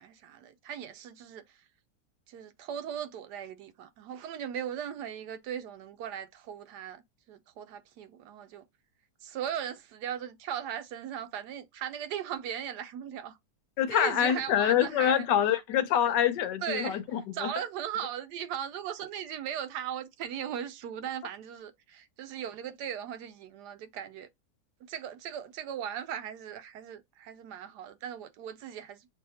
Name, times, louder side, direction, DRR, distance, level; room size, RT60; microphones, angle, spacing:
voice 1, 0.0-1.4 2.3-8.6 9.2-13.4 13.9-15.3 15.5-15.6 16.1-16.2 16.6-17.0 17.3-24.3 24.9-29.1, right 9 dB, 75° right, 1.1 m, -38 dB
voice 2, 13.8-17.5, left 10 dB, 80° left, 1.3 m, -26 dB
7.0 x 2.7 x 2.7 m
omnidirectional pair, 1.9 m